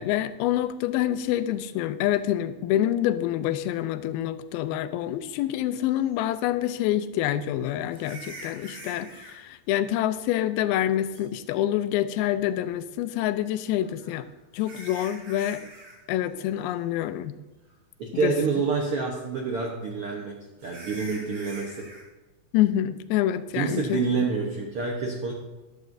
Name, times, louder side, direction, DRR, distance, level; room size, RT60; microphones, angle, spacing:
voice 1, 0.0-14.3 14.5-15.7 16.1-17.4 18.2-18.3 22.5-24.0, left 12 dB, 90° left, 12 dB, 2.5 m, -26 dB
sound 1, 6.0-6.1 7.9-9.4 11.1-11.2 13.8-16.0 16.2-16.6 17.0-17.1 17.7-17.8 20.6-22.1, right 1 dB, 40° right, 3.5 m, -44 dB
voice 2, 18.0-20.3 20.6-21.8 23.5-25.3, right 4 dB, 80° right, -1 dB, 1.2 m, -27 dB
13.5 x 12.0 x 2.7 m, 1.1 s
omnidirectional pair, 4.3 m